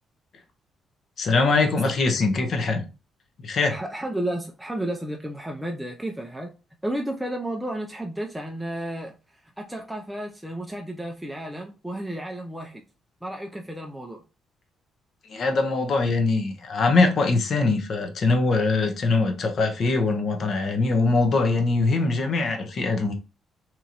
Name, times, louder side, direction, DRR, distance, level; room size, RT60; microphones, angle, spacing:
voice 1, 1.2-2.8 3.4-3.8 15.3-23.1, left 3 dB, 55° left, 0.7 m, -22 dB
voice 2, 3.7-6.5 6.8-12.8 13.2-14.2, right 1 dB, 5° right, 0.4 m, -32 dB
2.9 x 2.5 x 2.8 m
cardioid pair, 90°, 0 cm